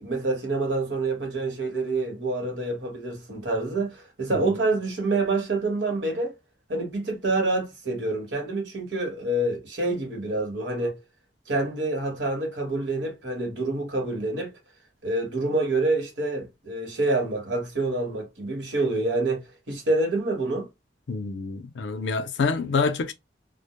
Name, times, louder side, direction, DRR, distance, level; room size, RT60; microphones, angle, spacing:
voice 1, 0.0-6.3 6.7-11.0 11.5-14.5 15.0-20.7, right 2 dB, 80° right, 1.1 m, -27 dB
voice 2, 21.1-23.1, left 4 dB, 85° left, 0.5 m, -27 dB
2.1 x 2.0 x 2.8 m
head